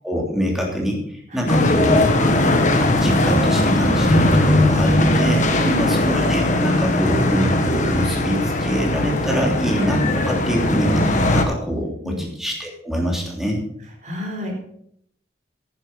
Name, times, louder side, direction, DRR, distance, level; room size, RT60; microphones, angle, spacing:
voice 1, 0.0-2.5 3.0-5.5 5.8-11.0 11.3-13.6, equal, ahead, -1 dB, 3.0 m, -25 dB
voice 2, 1.3-1.8 5.5-5.9 11.7-12.2 14.0-14.6, equal, 45° right, 2 dB, 3.9 m, -30 dB
sound 1, 1.5-11.4, left 1 dB, 45° left, 1.6 m, -18 dB
11.0 x 10.0 x 5.4 m, 0.69 s
head